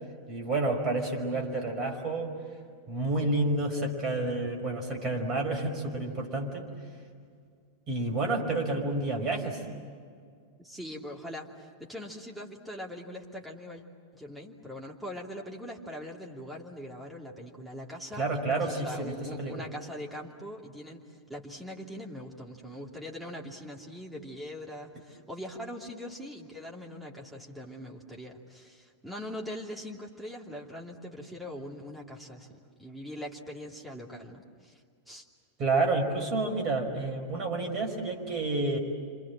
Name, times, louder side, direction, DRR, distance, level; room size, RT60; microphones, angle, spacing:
voice 1, 0.3-2.3 2.9-6.7 7.9-9.6 18.2-19.6 35.6-38.8, right 2 dB, 35° right, 3 dB, 5.5 m, -29 dB
voice 2, 10.6-13.8 14.1-18.2 18.5-35.3, equal, 5° right, -2 dB, 2.9 m, -42 dB
29.5 x 26.5 x 7.6 m, 2.1 s
figure-of-eight pair, 90°, 0 cm